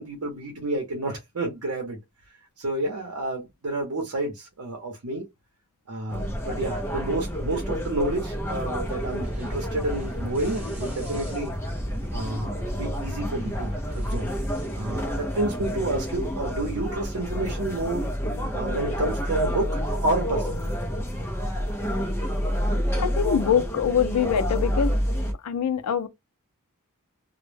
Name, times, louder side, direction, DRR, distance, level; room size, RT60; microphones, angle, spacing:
voice 1, 0.0-2.0 2.6-5.2 5.9-11.5 12.1-14.3 14.7-18.1 18.5-20.6, right 2 dB, 70° right, 0.7 m, -30 dB
sound 1, 6.1-25.3, equal, 10° left, 0.4 m, -29 dB
sound 2, 8.4-16.0, equal, 10° right, 0.8 m, -37 dB
voice 2, 23.0-25.0 25.4-26.1, left 8 dB, 80° left, 0.4 m, -24 dB
2.1 x 2.0 x 3.2 m
head